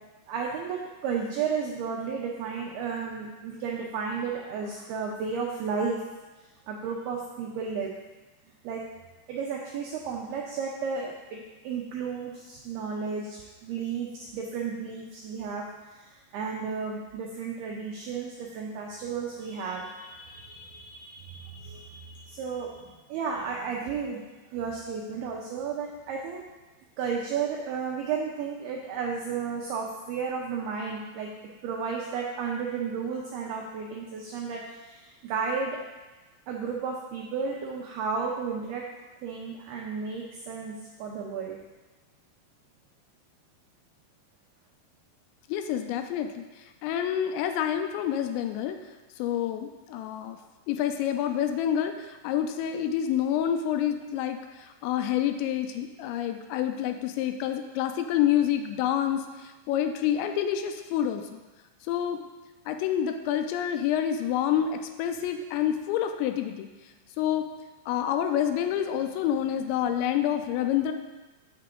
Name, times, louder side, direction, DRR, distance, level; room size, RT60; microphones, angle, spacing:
voice 1, 0.3-6.0 6.7-7.9 8.6-8.8 9.3-15.7 15.9-24.2 24.5-26.4 27.0-31.3 31.6-35.8 36.5-38.8 39.2-41.6, right 5 dB, 85° right, -1 dB, 2.2 m, -33 dB
voice 2, 45.5-48.8 49.2-50.4 50.7-61.4 61.9-62.3 62.7-66.7 67.2-67.5 67.9-70.9, left 10 dB, 85° left, 6 dB, 2.8 m, -28 dB
7.6 x 6.7 x 3.7 m, 1.2 s
omnidirectional pair, 5.3 m